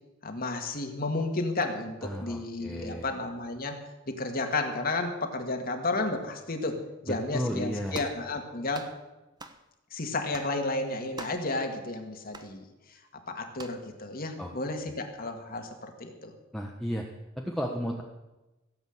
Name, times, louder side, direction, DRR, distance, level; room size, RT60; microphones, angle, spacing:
voice 1, 0.2-3.8 4.1-8.9 9.9-13.0 13.3-16.3, left 2 dB, 45° left, 4 dB, 2.0 m, -32 dB
voice 2, 2.0-3.1 7.1-8.0 14.4-14.5 16.5-17.0 17.4-18.0, equal, ahead, -1 dB, 1.2 m, -33 dB
sound 1, 7.9-8.2 8.7-9.0 9.4-9.6 10.3-10.6 11.2-11.5 12.3-12.5 13.6-13.8, right 2 dB, 20° right, 1.0 m, -43 dB
17.0 x 8.0 x 8.0 m, 1.0 s
head